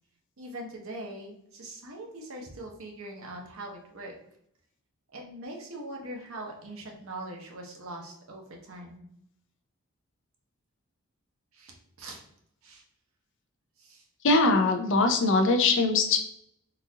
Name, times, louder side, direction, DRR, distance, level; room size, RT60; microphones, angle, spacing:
voice 1, 0.4-4.2 5.1-9.1 11.5-12.2 12.6-12.8 13.8-14.1, right 1 dB, 70° right, 1 dB, 0.8 m, -42 dB
voice 2, 14.2-16.2, left 3 dB, 60° left, 5 dB, 0.5 m, -22 dB
3.9 x 2.5 x 2.7 m, 0.72 s
head